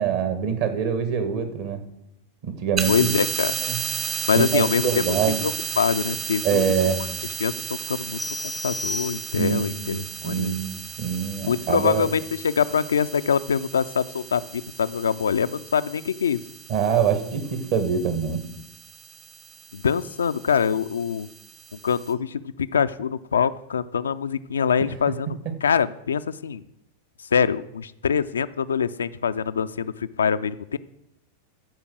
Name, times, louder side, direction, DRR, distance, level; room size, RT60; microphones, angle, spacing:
voice 1, 0.0-1.8 2.4-3.1 3.6-3.8 4.3-5.4 6.4-7.0 9.4-12.1 16.7-18.4 24.8-25.2, right 7 dB, 50° right, 9 dB, 1.5 m, -25 dB
sound 1, 2.8-22.1, right 6 dB, 30° right, 1.0 m, -34 dB
voice 2, 2.9-3.5 4.3-5.0 5.4-6.9 7.4-8.2 8.6-10.5 11.4-16.4 19.7-21.3 21.7-26.6 27.3-30.8, left 7 dB, 70° left, 13 dB, 0.4 m, -24 dB
sound 2, 8.2-9.7, left 1 dB, ahead, 0.5 m, -33 dB
13.5 x 5.2 x 6.3 m, 0.85 s
figure-of-eight pair, 90°, 0 cm